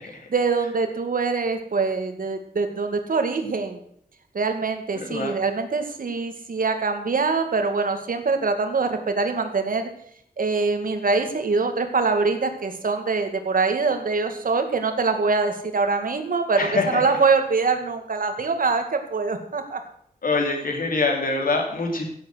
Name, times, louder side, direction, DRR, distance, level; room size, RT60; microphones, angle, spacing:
voice 1, 0.3-3.8 4.3-9.9 10.4-19.8, right 4 dB, 65° right, 6 dB, 2.1 m, -24 dB
voice 2, 4.9-5.3 16.6-17.2 20.2-22.0, left 3 dB, 65° left, 1 dB, 3.6 m, -24 dB
15.5 x 8.0 x 6.3 m, 0.68 s
wide cardioid pair, 135°, 15 cm